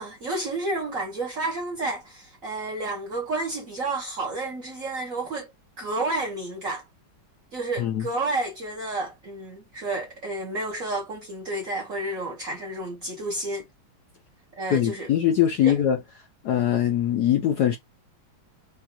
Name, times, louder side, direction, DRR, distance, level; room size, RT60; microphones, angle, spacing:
voice 1, 0.0-5.5 5.8-6.8 7.5-13.6 14.6-15.1 15.6-15.7, right 2 dB, 50° right, 1.1 m, -30 dB
voice 2, 14.7-16.0 16.4-17.8, left 10 dB, 70° left, 1.0 m, -22 dB
4.8 x 2.5 x 2.9 m
omnidirectional pair, 2.3 m